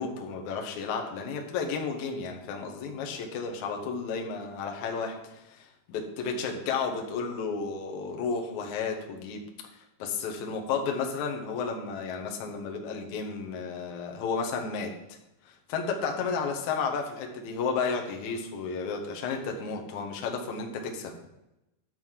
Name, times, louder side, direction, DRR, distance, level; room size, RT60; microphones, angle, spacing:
voice 1, 0.0-9.4 10.0-15.0 15.4-21.1, left 5 dB, 65° left, 2 dB, 1.9 m, -32 dB
11.0 x 4.2 x 7.4 m, 0.93 s
omnidirectional pair, 5.0 m